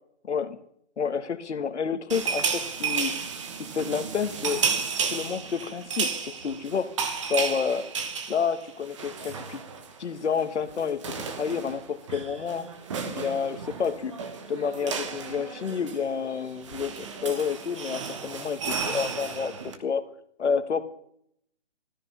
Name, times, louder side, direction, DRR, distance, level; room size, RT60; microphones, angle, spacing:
voice 1, 0.3-0.6 1.0-3.2 3.6-4.6 5.1-7.0 7.3-7.9 8.3-9.6 10.0-12.7 13.0-14.1 14.5-19.5 19.8-20.0 20.4-20.8, left 6 dB, 70° left, 10 dB, 1.6 m, -29 dB
sound 1, 2.1-10.0 10.2-10.4 10.7-19.8, right 5 dB, 25° right, 1.2 m, -33 dB
16.0 x 13.5 x 5.5 m, 0.72 s
hypercardioid pair, 170°, 36 cm